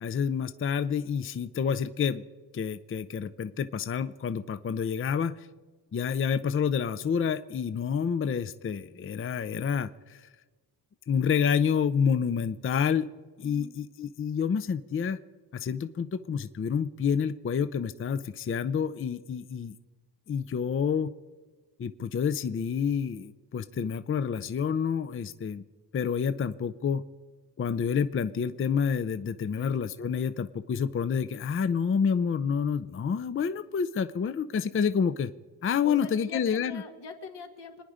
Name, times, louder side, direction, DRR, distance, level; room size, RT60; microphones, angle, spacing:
voice 1, 0.0-2.2 2.5-5.5 5.9-10.3 11.1-13.1 13.4-15.2 15.5-19.8 20.3-21.1 21.8-25.6 25.9-27.0 27.6-35.3 35.6-36.8, left 7 dB, 30° left, 12 dB, 0.5 m, -28 dB
voice 2, 13.4-13.7 29.6-29.7 35.8-37.8, left 5 dB, 80° left, 4 dB, 2.1 m, -43 dB
26.5 x 10.0 x 5.0 m, 1.3 s
wide cardioid pair, 115°, 41 cm